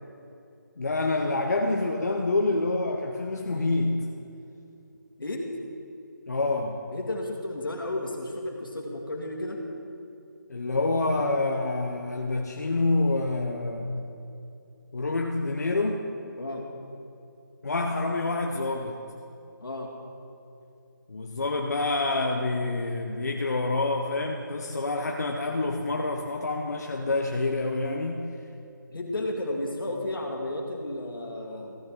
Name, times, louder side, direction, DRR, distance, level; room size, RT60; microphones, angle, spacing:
voice 1, 0.8-4.1 6.3-6.9 10.5-14.1 14.9-16.0 17.6-19.0 21.1-28.3, left 2 dB, 50° left, 1 dB, 0.7 m, -27 dB
voice 2, 6.9-9.6 16.4-16.6 19.6-19.9 28.9-31.8, left 1 dB, 80° left, 1 dB, 2.0 m, -33 dB
14.0 x 9.1 x 3.8 m, 2.6 s
figure-of-eight pair, 175°, 11 cm